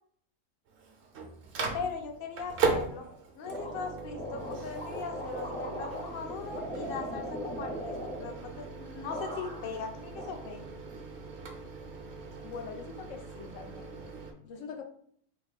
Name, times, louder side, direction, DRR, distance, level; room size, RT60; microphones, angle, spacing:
Microwave oven, 0.7-14.3, right 4 dB, 65° right, 0.9 m, -38 dB
voice 1, 1.7-3.1 3.3-10.7, left 5 dB, 55° left, 3 dB, 0.7 m, -39 dB
sound 1, 3.5-8.8 9.1-9.8 10.1-11.0, equal, 10° left, 0.4 m, -40 dB
voice 2, 12.4-14.1 14.4-14.8, left 5 dB, 90° left, 3 dB, 1.0 m, -43 dB
2.9 x 2.6 x 3.9 m, 0.63 s
omnidirectional pair, 1.3 m